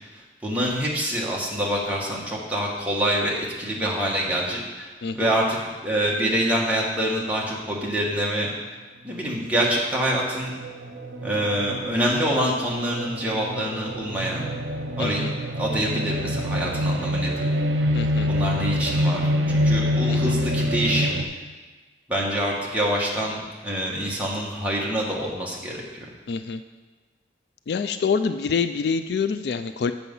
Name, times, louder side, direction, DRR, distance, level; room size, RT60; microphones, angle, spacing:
voice 1, 0.4-5.6 5.8-8.5 9.0-10.5 11.2-14.4 15.0-15.2 15.6-17.3 18.3-21.2 22.1-23.4 23.6-26.0, equal, 10° right, -4 dB, 1.5 m, -26 dB
sound 1, 9.3-21.2, equal, 85° right, 0.8 m, -26 dB
voice 2, 15.0-15.3 17.9-18.3 20.0-20.3 26.3-26.6 27.7-29.9, left 5 dB, 65° left, 10 dB, 0.3 m, -26 dB
7.5 x 6.9 x 5.4 m, 1.3 s
head